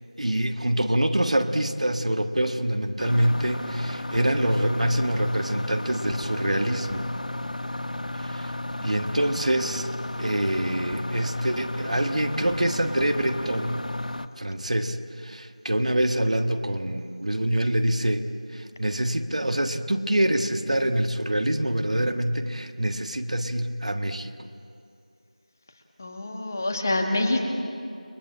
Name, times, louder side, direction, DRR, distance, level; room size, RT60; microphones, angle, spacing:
voice 1, 0.2-7.1 8.2-8.5 8.8-9.9 10.2-13.9 14.4-18.2 18.5-24.3, right 1 dB, 60° right, 6 dB, 1.5 m, -25 dB
sound 1, 3.0-14.3, left 1 dB, 80° left, 1.3 m, -33 dB
voice 2, 26.0-27.4, left 2 dB, 25° left, 3 dB, 1.9 m, -26 dB
29.5 x 23.0 x 8.7 m, 2.5 s
figure-of-eight pair, 175°, 4 cm